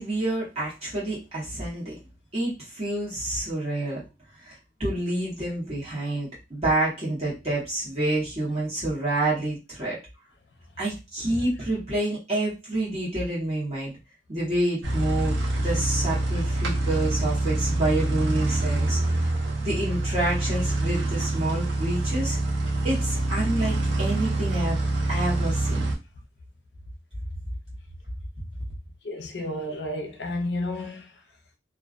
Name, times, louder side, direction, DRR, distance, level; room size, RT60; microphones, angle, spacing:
voice 1, 0.0-2.0 2.3-4.0 4.4-10.0 10.8-13.9 14.3-19.0 19.6-22.4 22.8-24.8 25.1-25.9, right 1 dB, 35° right, 1.0 m, -28 dB
sound 1, 14.8-25.9, right 2 dB, 75° right, 0.7 m, -26 dB
voice 2, 29.0-31.1, left 1 dB, 70° left, 0.5 m, -32 dB
2.4 x 2.2 x 2.4 m
head